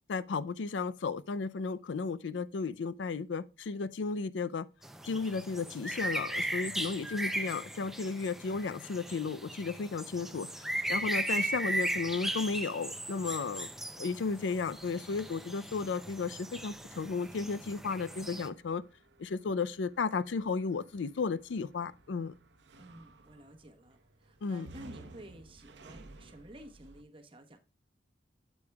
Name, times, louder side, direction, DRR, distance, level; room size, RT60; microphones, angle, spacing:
voice 1, 0.1-4.7 5.1-13.7 14.0-18.8 19.2-22.3 24.4-24.7, left 4 dB, 85° left, 0.4 m, -34 dB
sound 1, 4.8-18.5, right 1 dB, ahead, 0.5 m, -37 dB
sound 2, 13.2-27.0, right 2 dB, 75° right, 0.8 m, -57 dB
voice 2, 13.4-13.7 18.3-18.6 22.8-27.6, right 1 dB, 30° right, 1.0 m, -52 dB
8.4 x 8.2 x 2.3 m
head